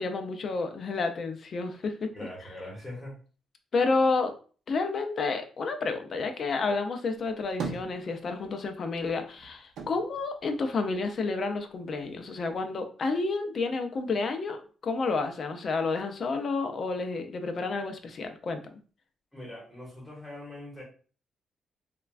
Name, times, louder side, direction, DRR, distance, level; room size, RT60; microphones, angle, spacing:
voice 1, 0.0-2.1 3.7-4.3 4.7-18.7, left 3 dB, 35° left, 6 dB, 0.4 m, -30 dB
voice 2, 2.1-3.2 19.3-20.8, left 1 dB, 5° left, -4 dB, 1.0 m, -42 dB
sound 1, 7.1-8.6 8.9-11.3 11.7-12.6, right 5 dB, 80° right, 0.6 m, -41 dB
3.2 x 2.1 x 2.4 m, 0.39 s
cardioid pair, 175°, 0 cm